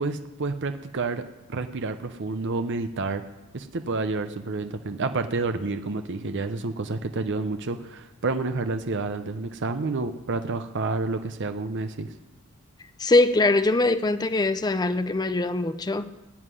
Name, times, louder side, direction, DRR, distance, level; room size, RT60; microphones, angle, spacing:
voice 1, 0.0-3.2 3.5-12.1, right 3 dB, 55° right, 0.7 m, -29 dB
voice 2, 13.0-16.1, left 2 dB, 20° left, 0.5 m, -22 dB
16.0 x 5.7 x 9.8 m
head